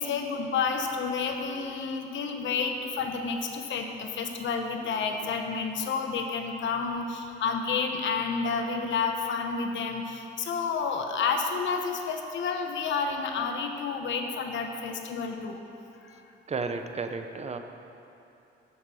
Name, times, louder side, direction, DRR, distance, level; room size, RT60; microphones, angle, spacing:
voice 1, 0.0-15.6 16.0-16.2, left 5 dB, 70° left, 5 dB, 1.0 m, -30 dB
voice 2, 16.5-17.6, right 4 dB, 35° right, 7 dB, 0.8 m, -32 dB
9.0 x 6.6 x 6.9 m, 2.9 s
cardioid pair, 90°, 20 cm